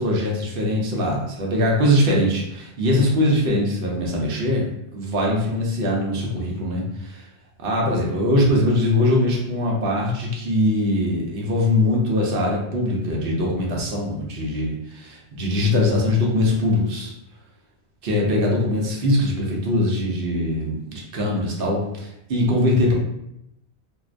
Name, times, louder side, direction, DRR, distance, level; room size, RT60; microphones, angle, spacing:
voice 1, 0.0-7.2 7.6-17.1 18.0-22.9, left 1 dB, 60° right, -2 dB, 0.8 m, -22 dB
2.5 x 2.1 x 2.4 m, 0.82 s
omnidirectional pair, 1.1 m